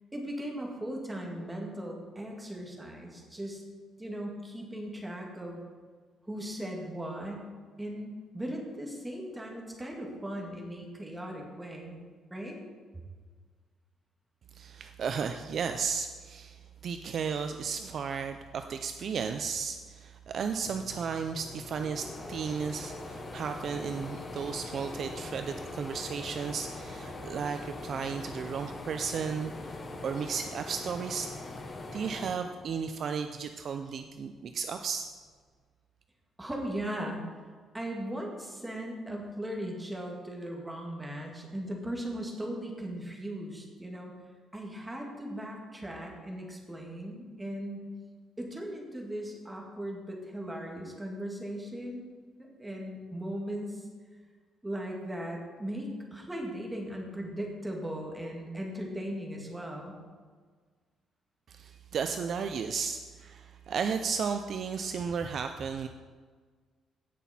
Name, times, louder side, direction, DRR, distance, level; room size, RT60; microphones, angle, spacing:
voice 1, 0.1-3.6 4.0-5.6 6.3-7.5 7.8-12.0 12.3-12.6 12.9-13.0 36.4-37.2 37.7-44.1 44.5-47.9 48.4-52.1 52.4-53.9 54.6-59.9, right 1 dB, 10° right, 0 dB, 1.8 m, -38 dB
voice 2, 14.5-31.3 31.9-35.1 61.5-65.9, right 6 dB, 45° right, 7 dB, 0.4 m, -34 dB
sound 1, 20.7-33.3 33.7-34.8, left 2 dB, 25° left, 0.9 m, -42 dB
16.5 x 6.0 x 4.2 m, 1.5 s
cardioid pair, 155°, 0 cm